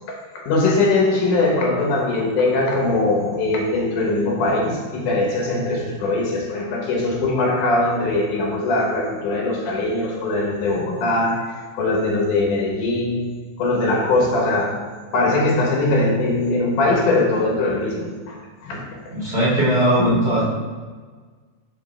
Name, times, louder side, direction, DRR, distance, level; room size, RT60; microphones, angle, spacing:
voice 1, 0.1-13.3 13.6-19.2 20.0-20.5, left 2 dB, 75° left, -1 dB, 2.5 m, -21 dB
voice 2, 19.1-20.5, right 1 dB, 25° right, -9 dB, 1.5 m, -19 dB
6.3 x 4.3 x 4.2 m, 1.5 s
omnidirectional pair, 3.7 m